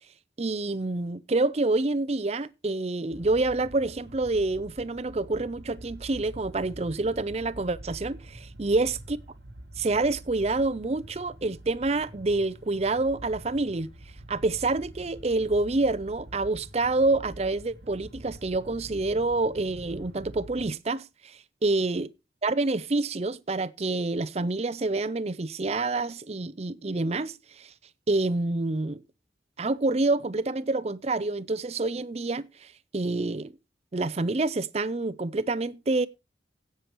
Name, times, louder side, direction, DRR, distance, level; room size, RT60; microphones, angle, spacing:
voice 1, 0.4-9.2 9.8-13.9 14.3-22.1 22.4-27.7 28.1-29.0 29.6-33.5 33.9-36.1, right 2 dB, 35° right, 0.5 m, -27 dB
sound 1, 3.1-20.7, right 1 dB, 70° right, 1.4 m, -46 dB
16.5 x 6.9 x 3.0 m
head